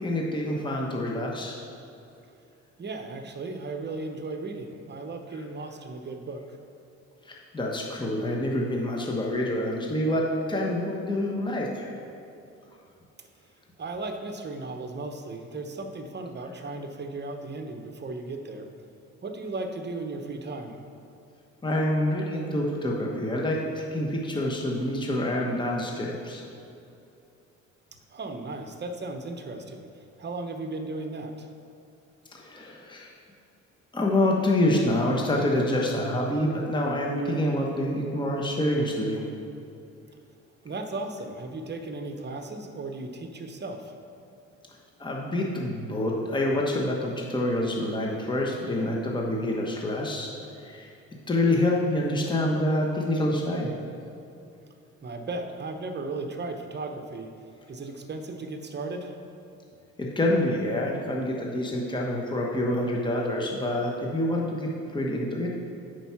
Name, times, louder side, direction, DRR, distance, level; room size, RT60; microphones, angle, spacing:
voice 1, 0.0-1.5 7.2-11.9 21.6-26.4 32.3-33.1 33.9-39.2 45.0-50.3 50.6-50.9 51.3-53.7 60.0-65.5, left 1 dB, 15° left, -2 dB, 1.1 m, -27 dB
voice 2, 2.8-6.4 13.8-18.7 19.2-20.8 28.1-29.9 30.2-31.5 40.6-44.0 55.0-57.3 57.7-59.2, right 2 dB, 35° right, 5 dB, 0.9 m, -36 dB
9.1 x 4.7 x 5.8 m, 2.6 s
cardioid pair, 90°, 30 cm